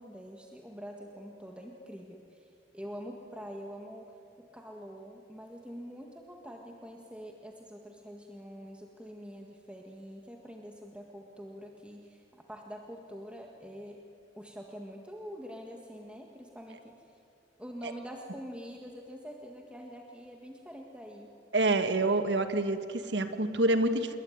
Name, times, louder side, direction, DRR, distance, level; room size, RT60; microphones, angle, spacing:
voice 1, 0.0-14.0 14.4-17.2 17.6-21.3, equal, 5° right, 1 dB, 1.8 m, -45 dB
voice 2, 21.5-24.2, right 2 dB, 85° right, 9 dB, 1.6 m, -27 dB
27.0 x 22.5 x 9.6 m, 2.5 s
head